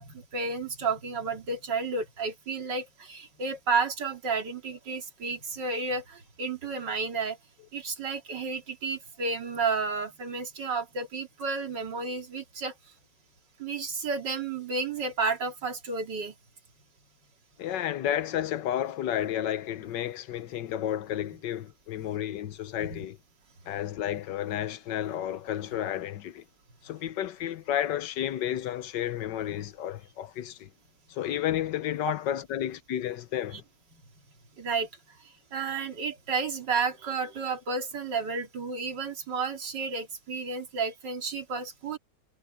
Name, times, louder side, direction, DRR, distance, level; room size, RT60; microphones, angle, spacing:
voice 1, 0.0-7.4 7.7-12.7 13.6-16.3 22.8-23.0 32.1-32.2 33.5-33.6 34.6-34.9 35.5-42.0, right 4 dB, 85° right, 3.0 m, -31 dB
voice 2, 17.6-23.2 23.7-26.4 26.8-30.7 31.1-33.6, left 11 dB, 90° left, 1.5 m, -31 dB
omnidirectional pair, 1.8 m